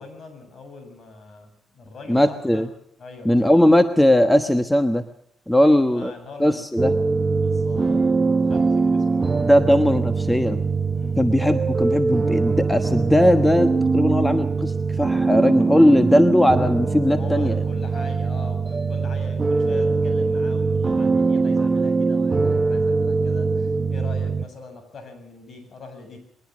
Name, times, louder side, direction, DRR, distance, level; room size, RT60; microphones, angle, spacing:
voice 1, 0.0-2.7 3.0-3.5 5.6-6.7 7.3-8.0 8.4-9.3 10.9-11.2 17.1-26.2, left 3 dB, 50° left, 7 dB, 7.6 m, -41 dB
voice 2, 2.1-2.7 3.2-5.0 5.5-6.1 6.4-6.9 9.4-10.6 11.2-17.5, left 1 dB, 5° left, 9 dB, 1.2 m, -18 dB
sound 1, 6.8-24.5, right 4 dB, 30° right, 0.8 m, -22 dB
22.0 x 19.0 x 6.2 m, 0.69 s
cardioid pair, 90°, 0 cm